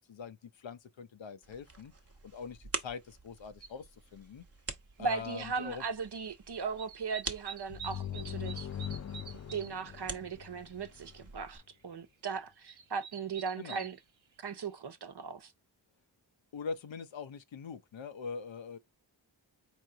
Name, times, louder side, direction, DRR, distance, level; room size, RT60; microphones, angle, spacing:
voice 1, 0.0-1.9 2.2-4.4 5.0-5.8 13.6-13.9 16.5-18.8, left 5 dB, 75° left, 0.8 m, -43 dB
sound 1, 1.4-11.6, right 3 dB, 30° right, 1.0 m, -46 dB
sound 2, 3.6-3.7 5.1-5.2 5.5-6.3 6.6-9.9 10.3-10.4 10.5-10.9 11.4-11.5 12.4-14.0 14.6-14.7, right 7 dB, 85° right, 0.9 m, -48 dB
voice 2, 5.0-8.7 9.5-14.0 14.4-15.5, right 5 dB, 60° right, 0.9 m, -38 dB
sound 3, 7.7-11.3, left 10 dB, 35° left, 0.4 m, -41 dB
4.4 x 3.1 x 3.8 m
cardioid pair, 50°, 46 cm